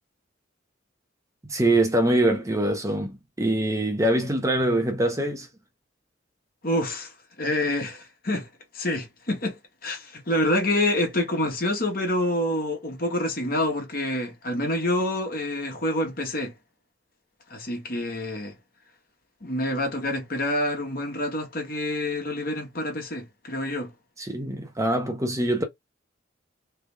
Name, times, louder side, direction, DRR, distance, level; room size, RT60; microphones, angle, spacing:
voice 1, 1.5-5.5 24.2-25.6, right 1 dB, 15° right, 0.9 m, -24 dB
voice 2, 6.6-7.1 7.4-8.5 8.7-16.5 17.5-18.5 19.4-23.9, left 1 dB, 50° left, 1.7 m, -27 dB
3.8 x 3.4 x 3.4 m
head